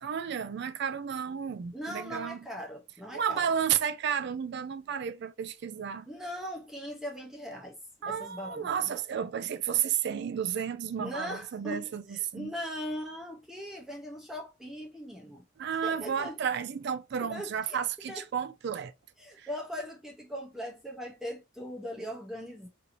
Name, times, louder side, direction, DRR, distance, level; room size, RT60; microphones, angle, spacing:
voice 1, 0.0-2.5 3.1-6.1 8.0-12.5 15.6-18.9 19.4-19.5, right 8 dB, 60° right, 0.4 m, -32 dB
voice 2, 1.7-3.5 6.1-7.8 8.1-8.9 11.0-15.4 15.8-16.4 17.2-17.8 18.1-18.2 19.2-22.7, equal, ahead, 0.7 m, -40 dB
4.3 x 2.6 x 2.6 m
head